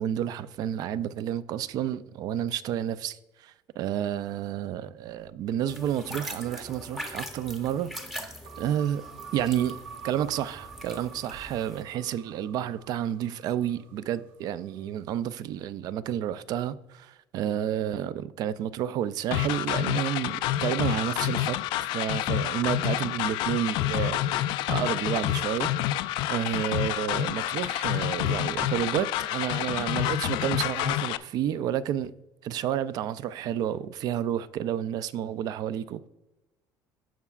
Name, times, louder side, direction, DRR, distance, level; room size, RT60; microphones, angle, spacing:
voice 1, 0.0-7.9 8.6-9.0 9.3-25.7 26.3-32.1 32.4-36.1, right 10 dB, 50° right, 0.4 m, -30 dB
sound 1, 5.7-11.8, equal, 5° right, 0.7 m, -42 dB
sound 2, 8.4-14.8, right 7 dB, 85° right, 1.0 m, -47 dB
sound 3, 19.3-31.2, left 13 dB, 70° left, 0.4 m, -28 dB
16.5 x 5.7 x 2.4 m
cardioid pair, 160°, 8 cm